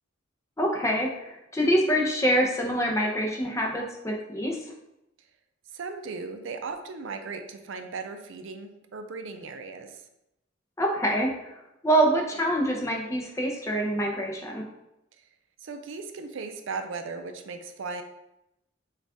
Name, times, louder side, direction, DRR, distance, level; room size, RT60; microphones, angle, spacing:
voice 1, 0.6-4.6 10.8-11.3 11.8-14.6, right 1 dB, 15° left, 0 dB, 0.6 m, -25 dB
voice 2, 5.7-10.0 15.6-18.0, right 4 dB, 70° right, 7 dB, 0.5 m, -37 dB
6.2 x 2.4 x 3.5 m, 0.87 s
head